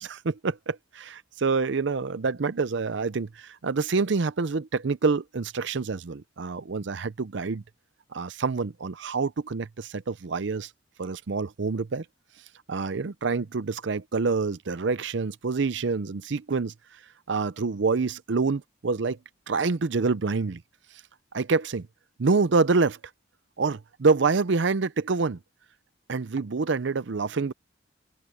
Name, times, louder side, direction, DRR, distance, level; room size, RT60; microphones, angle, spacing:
voice 1, 0.0-7.6 8.1-10.7 11.0-12.0 12.7-16.7 17.3-19.2 19.5-20.6 21.3-21.9 22.2-23.0 23.6-25.4 26.1-27.5, right 4 dB, 60° right, 0.5 m, -26 dB
open air
head